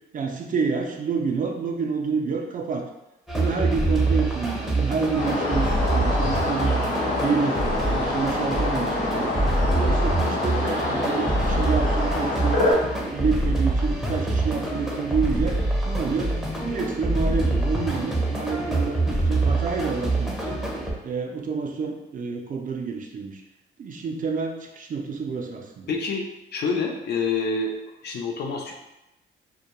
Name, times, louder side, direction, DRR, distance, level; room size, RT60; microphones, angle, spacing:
voice 1, 0.1-2.8 3.4-6.8 7.2-9.4 9.7-12.6 13.0-15.6 15.9-20.6 21.0-23.4 23.8-25.9, right 5 dB, 40° right, 2 dB, 0.4 m, -28 dB
sound 1, 3.3-20.9, right 2 dB, ahead, 0.6 m, -25 dB
sound 2, 5.1-12.7, left 2 dB, 85° left, 1.0 m, -26 dB
voice 2, 25.9-26.3 26.5-27.7 28.0-28.7, left 4 dB, 55° left, 1 dB, 0.5 m, -27 dB
2.2 x 2.2 x 2.8 m, 0.92 s
cardioid pair, 90°, 20 cm